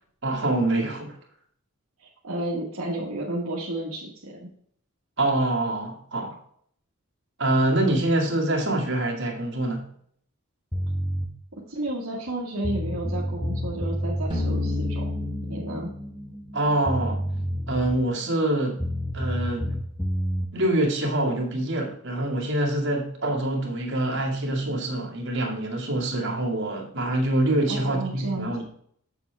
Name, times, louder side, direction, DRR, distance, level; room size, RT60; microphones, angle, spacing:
voice 1, 0.2-1.1 5.2-6.4 7.4-9.9 16.5-17.2 17.7-18.8 19.1-19.8 20.5-28.6, right 1 dB, 55° right, 0 dB, 2.1 m, -25 dB
voice 2, 2.0-4.5 11.7-15.1 15.5-15.9 27.7-28.5, right 1 dB, 70° right, -3 dB, 1.5 m, -32 dB
sound 1, 10.7-11.3 12.3-12.4 12.6-14.3 16.5-16.6 16.9-18.1 18.8-20.5, equal, 5° left, 0.7 m, -28 dB
sound 2, 14.3-17.2, left 2 dB, 25° right, 2.1 m, -30 dB
7.7 x 7.1 x 3.4 m, 0.63 s
head